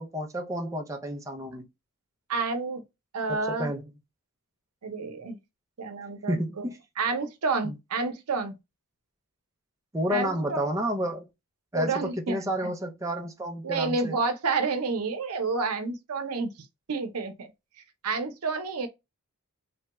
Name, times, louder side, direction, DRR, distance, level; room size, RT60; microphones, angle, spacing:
voice 1, 0.0-1.7 3.3-3.9 6.3-6.8 7.6-7.8 9.9-11.3 11.7-14.2, equal, 15° right, 0.5 m, -30 dB
voice 2, 2.3-2.8 3.1-3.7 4.8-5.4 5.8-6.6 7.0-8.6 10.1-10.7 11.7-12.7 13.6-16.5 16.9-17.5 18.0-18.9, right 4 dB, 85° right, 0.7 m, -29 dB
3.2 x 2.2 x 2.9 m
head